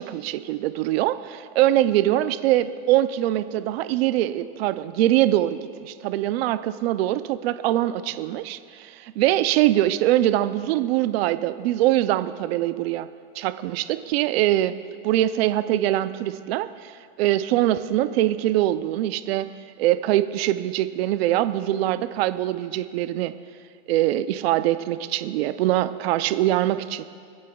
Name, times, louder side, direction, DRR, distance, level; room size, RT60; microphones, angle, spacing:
voice 1, 0.0-13.1 13.4-14.7 15.0-19.5 19.8-23.3 23.9-27.0, right 14 dB, 75° right, 12 dB, 0.6 m, -23 dB
25.0 x 8.6 x 2.3 m, 2.1 s
supercardioid pair, 130°, 31 cm